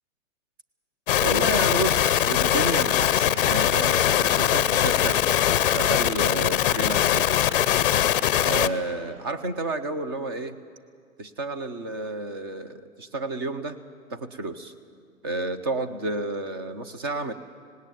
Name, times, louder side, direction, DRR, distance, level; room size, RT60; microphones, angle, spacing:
sound 1, 1.1-8.7, left 11 dB, 40° left, 0.6 m, -22 dB
voice 1, 1.2-5.2 5.6-7.3 8.5-10.6 11.2-13.8 14.1-14.7 15.2-17.3, right 2 dB, 20° right, 11 dB, 0.5 m, -30 dB
18.5 x 17.5 x 9.1 m, 2.1 s
hypercardioid pair, 145°, 45 cm